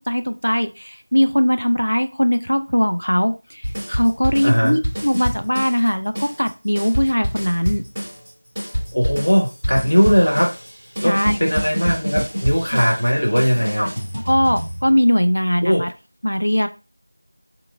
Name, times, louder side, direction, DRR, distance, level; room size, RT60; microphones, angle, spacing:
voice 1, 0.1-7.8 11.0-11.4 13.8-13.9 14.3-15.9 16.2-16.7, equal, 80° left, 8 dB, 0.4 m, -20 dB
sound 1, 3.6-5.9 6.1-15.2, equal, 5° right, 0.6 m, -27 dB
voice 2, 4.4-4.7 8.9-10.5 11.0-13.9 15.6-15.8, equal, 30° left, -2 dB, 0.7 m, -18 dB
2.9 x 2.3 x 2.3 m, 0.29 s
figure-of-eight pair, 180°, 0 cm